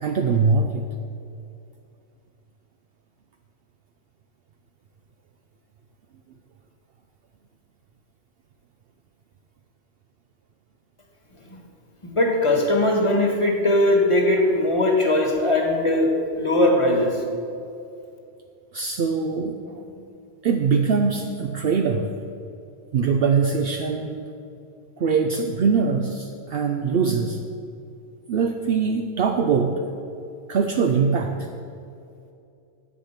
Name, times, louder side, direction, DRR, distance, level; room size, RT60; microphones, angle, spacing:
voice 1, 0.0-0.8 18.7-19.8 20.4-22.1 22.9-24.2 25.0-27.4 28.3-29.8 30.5-31.5, right 5 dB, 65° right, 4 dB, 0.8 m, -22 dB
voice 2, 12.0-17.2, left 1 dB, 30° left, 1 dB, 1.5 m, -20 dB
9.8 x 8.1 x 5.8 m, 2.6 s
omnidirectional pair, 1.1 m